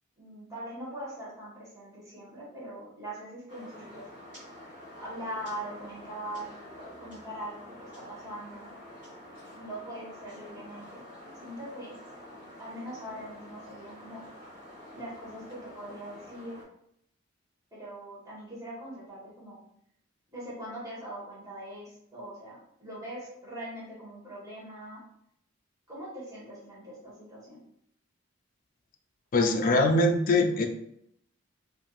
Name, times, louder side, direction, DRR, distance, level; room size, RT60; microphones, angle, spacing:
voice 1, 0.2-4.0 5.0-6.5 7.0-8.7 9.5-11.0 11.4-11.9 12.6-14.2 14.9-16.6 17.7-19.6 20.3-25.0 25.9-27.6, right 1 dB, 20° right, -8 dB, 1.3 m, -41 dB
sound 1, 3.5-16.6, equal, 40° right, 1.5 m, -48 dB
voice 2, 29.3-30.7, left 2 dB, 45° left, 5 dB, 0.4 m, -22 dB
3.4 x 2.5 x 2.3 m, 0.72 s
head